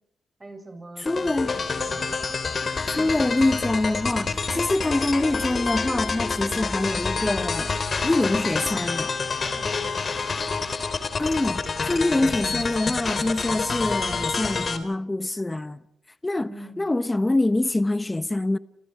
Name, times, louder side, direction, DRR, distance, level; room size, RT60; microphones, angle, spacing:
voice 1, 0.4-2.2 9.4-10.1 16.4-16.9, right 2 dB, 25° right, 7.8 m, -43 dB
voice 2, 1.0-1.6 2.9-7.7 8.0-9.1 11.2-15.8 16.2-18.6, left 2 dB, 20° left, 1.1 m, -25 dB
sound 1, 1.1-14.8, left 4 dB, 45° left, 3.4 m, -28 dB
29.0 x 28.0 x 4.8 m
supercardioid pair, 65°, 0 cm